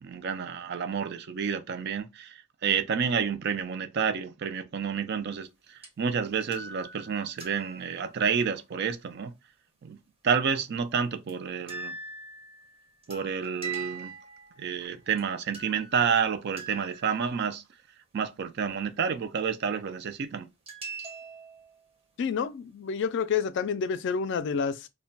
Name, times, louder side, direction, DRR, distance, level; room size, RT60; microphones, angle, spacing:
voice 1, 0.0-9.3 9.8-10.0 10.2-11.9 13.1-14.1 14.6-17.6 18.1-20.5, right 6 dB, 50° right, 0.4 m, -29 dB
sound 1, 5.8-5.9 6.4-8.3 11.3-11.4 11.7-14.8 15.2-15.3 15.5-17.2 20.7-21.9, right 4 dB, 25° right, 0.7 m, -42 dB
voice 2, 22.2-24.9, left 6 dB, 55° left, 0.3 m, -29 dB
2.2 x 2.2 x 3.8 m
head